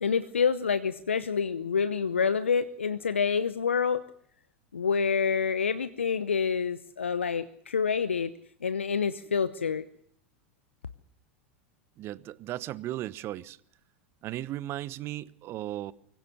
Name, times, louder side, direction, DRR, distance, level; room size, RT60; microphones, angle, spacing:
voice 1, 0.0-4.0 4.7-8.3 8.6-9.9, left 6 dB, 85° left, 0.9 m, -27 dB
voice 2, 12.0-13.6 14.2-15.9, right 14 dB, 40° right, 1.0 m, -36 dB
24.0 x 16.5 x 6.9 m
figure-of-eight pair, 90°, 6 cm